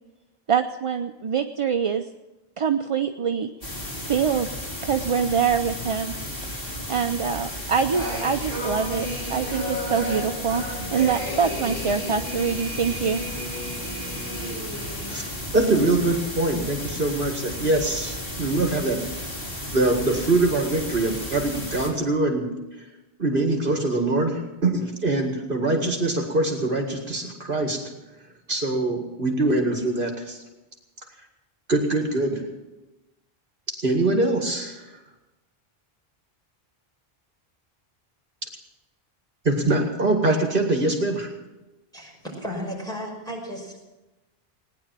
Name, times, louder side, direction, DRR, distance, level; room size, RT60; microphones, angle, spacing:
voice 1, 0.5-2.1 2.6-3.5 4.0-4.5 4.8-6.1 6.9-10.6 10.9-13.2, right 7 dB, 40° right, 7 dB, 0.5 m, -24 dB
sound 1, 3.6-21.9, left 1 dB, 65° left, 3.7 m, -34 dB
sound 2, 7.3-15.2, equal, 45° left, 8.1 m, -34 dB
voice 2, 15.1-19.0 19.7-22.5 23.2-27.8 28.5-30.4 31.7-32.4 33.7-34.8 39.4-41.3, right 2 dB, 60° right, 2 dB, 2.2 m, -23 dB
voice 3, 41.9-43.8, equal, 5° left, -3 dB, 5.5 m, -34 dB
18.5 x 10.5 x 7.4 m, 1.0 s
omnidirectional pair, 1.0 m